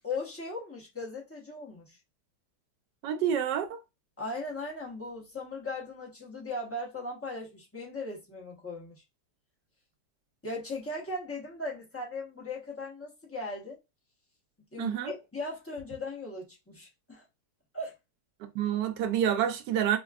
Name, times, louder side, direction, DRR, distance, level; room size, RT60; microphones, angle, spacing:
voice 1, 0.0-2.0 4.2-9.0 10.4-13.8 14.7-17.2 17.7-18.0, left 2 dB, 10° left, 0.7 m, -38 dB
voice 2, 3.0-3.8 14.8-15.1 18.4-20.0, right 9 dB, 80° right, 1.2 m, -28 dB
5.1 x 2.3 x 2.3 m
omnidirectional pair, 1.8 m